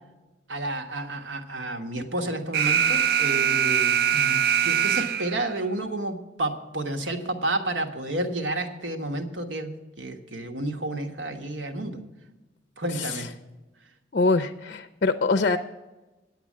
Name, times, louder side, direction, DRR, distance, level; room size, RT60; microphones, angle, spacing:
voice 1, 0.5-12.0 12.8-13.3, right 2 dB, 80° right, 5 dB, 1.4 m, -31 dB
Alarm, 2.5-5.5, right 8 dB, 55° right, 0.4 m, -22 dB
voice 2, 12.9-13.3 14.1-15.6, left 3 dB, 45° left, 8 dB, 0.5 m, -24 dB
10.0 x 8.0 x 7.3 m, 1.1 s
head